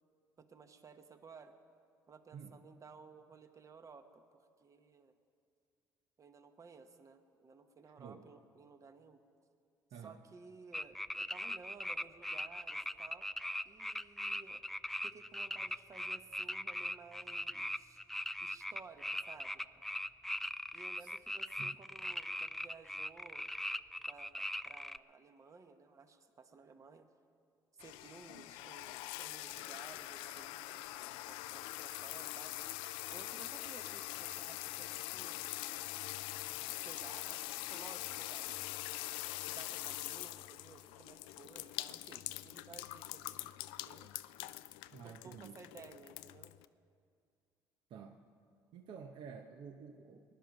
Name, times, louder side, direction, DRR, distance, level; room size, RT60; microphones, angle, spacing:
voice 1, 0.4-1.5 2.1-5.1 6.2-9.2 10.0-13.3 13.6-14.6 15.0-18.0 18.4-19.7 20.7-23.5 24.1-27.1 27.8-32.5 33.1-35.6 36.7-38.8 39.4-44.1 45.0-46.5 50.1-50.2, right 4 dB, 40° right, 8 dB, 1.1 m, -56 dB
voice 2, 7.8-8.3 9.9-10.2 21.0-21.1 21.6-21.8 44.9-45.5 47.9-48.2 48.7-50.2, right 6 dB, 65° right, 5 dB, 0.8 m, -50 dB
sound 1, 10.7-25.0, left 1 dB, 5° left, 0.3 m, -40 dB
sound 2, 27.8-46.6, left 17 dB, 85° left, 0.4 m, -44 dB
19.5 x 11.0 x 5.3 m, 2.3 s
supercardioid pair, 75°, 9 cm